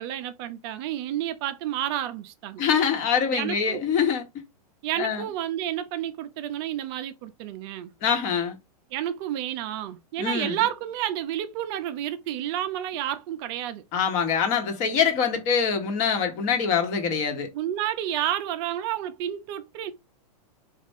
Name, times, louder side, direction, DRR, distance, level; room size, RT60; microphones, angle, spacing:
voice 1, 0.0-2.6 3.3-3.8 4.8-7.9 8.9-13.8 17.5-19.9, right 11 dB, 40° right, 0.5 m, -30 dB
voice 2, 2.6-4.2 5.0-5.2 8.0-8.6 10.2-10.6 13.9-17.5, left 6 dB, 40° left, 1.2 m, -24 dB
4.2 x 2.4 x 3.5 m
hypercardioid pair, 135°, 20 cm